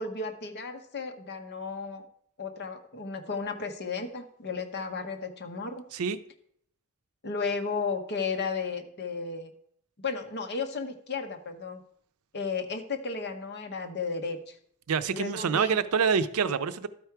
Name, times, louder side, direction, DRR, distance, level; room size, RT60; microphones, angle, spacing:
voice 1, 0.0-2.0 2.4-5.8 7.2-9.5 10.0-11.8 12.3-14.5 15.1-15.8, left 4 dB, 50° left, 6 dB, 0.9 m, -34 dB
voice 2, 14.9-16.9, right 6 dB, 85° right, 13 dB, 0.5 m, -26 dB
12.0 x 4.7 x 4.6 m, 0.67 s
head